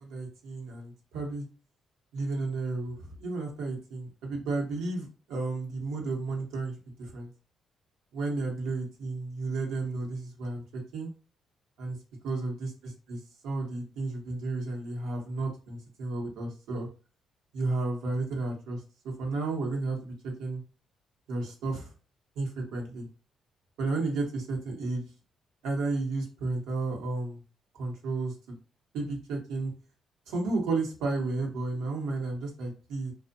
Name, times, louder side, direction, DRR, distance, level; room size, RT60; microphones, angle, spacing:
voice 1, 0.0-1.5 2.1-7.3 8.1-11.1 11.8-12.0 12.2-12.7 13.1-16.9 17.5-18.8 19.2-20.6 21.3-21.9 22.4-23.1 23.8-25.1 25.6-27.4 27.8-28.3 28.9-29.7 30.3-33.1, right 3 dB, 90° right, 1 dB, 0.8 m, -32 dB
2.5 x 2.1 x 2.5 m, 0.35 s
cardioid pair, 90°, 0 cm